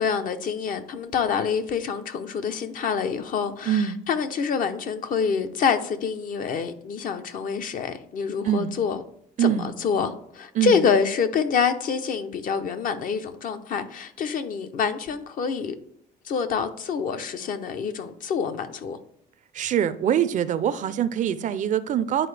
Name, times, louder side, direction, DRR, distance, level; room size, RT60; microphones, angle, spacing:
voice 1, 0.0-9.0 9.4-9.5 9.8-15.7 16.2-19.0, left 6 dB, 55° left, 0.7 m, -26 dB
voice 2, 3.6-4.0 8.4-8.7 9.4-9.7 10.5-10.8 19.5-22.3, right 9 dB, 50° right, 0.4 m, -24 dB
10.0 x 4.2 x 3.3 m
cardioid pair, 110°, 17 cm